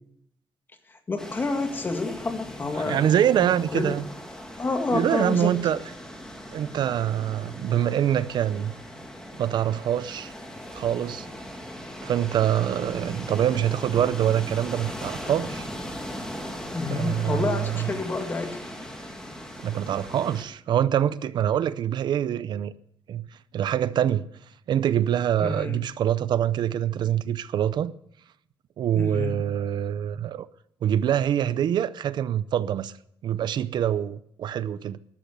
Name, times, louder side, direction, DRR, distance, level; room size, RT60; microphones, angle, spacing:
voice 1, 0.9-3.1 3.7-4.0 4.6-5.5 16.7-18.6 25.4-25.8 28.9-29.4, left 3 dB, 25° left, 1.9 m, -29 dB
sound 1, 1.2-20.4, equal, 5° left, 2.4 m, -39 dB
voice 2, 2.8-4.1 4.9-5.8 6.5-8.7 9.4-10.3 10.7-11.3 12.0-15.7 16.9-17.9 19.6-22.7 23.1-23.2 23.5-24.3 24.7-27.9 28.8-30.5 30.8-32.9 33.2-35.0, right 10 dB, 55° right, 0.5 m, -25 dB
13.5 x 12.0 x 8.0 m
cardioid pair, 165°, 9 cm